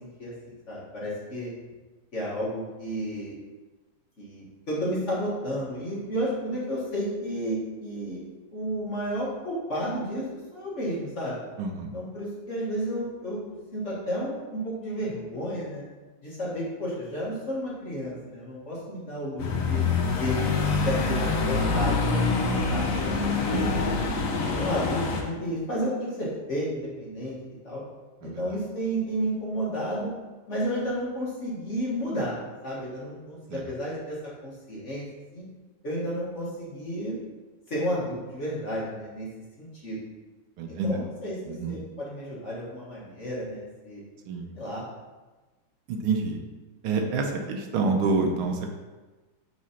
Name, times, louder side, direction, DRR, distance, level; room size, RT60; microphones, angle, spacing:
voice 1, 0.0-1.5 2.1-3.4 4.2-8.2 8.5-11.4 11.9-15.8 16.2-19.8 20.2-20.5 20.8-23.8 24.5-27.4 27.6-27.8 28.2-30.1 30.5-32.4 32.6-34.2 34.4-35.0 35.3-35.4 35.8-37.2 37.7-39.3 39.6-40.0 40.7-44.0 44.5-44.8, equal, 35° left, -6 dB, 1.7 m, -32 dB
voice 2, 11.6-11.9 23.5-23.8 28.2-28.4 33.5-33.6 40.6-41.0 41.5-41.8 44.3-44.5 45.9-46.4 46.8-48.7, right 3 dB, 75° right, 3 dB, 1.5 m, -27 dB
sound 1, 19.4-25.2, left 4 dB, 60° left, 0.8 m, -25 dB
6.1 x 4.0 x 5.7 m, 1.2 s
omnidirectional pair, 2.4 m